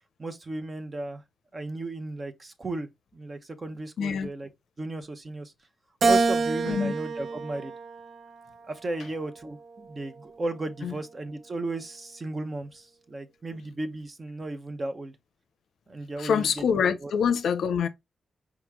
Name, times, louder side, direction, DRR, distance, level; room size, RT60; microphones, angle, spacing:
voice 1, 0.2-1.2 1.5-4.5 4.8-5.5 6.0-7.7 8.7-15.2 15.9-16.5 17.0-17.1, right 2 dB, 35° right, 0.8 m, -35 dB
voice 2, 4.0-4.3 6.6-6.9 10.8-10.9 16.2-17.9, left 7 dB, 85° left, 0.6 m, -25 dB
Keyboard (musical), 6.0-8.5 9.1-10.3, right 4 dB, 55° right, 0.5 m, -28 dB
4.8 x 3.0 x 3.5 m
cardioid pair, 95°, 0 cm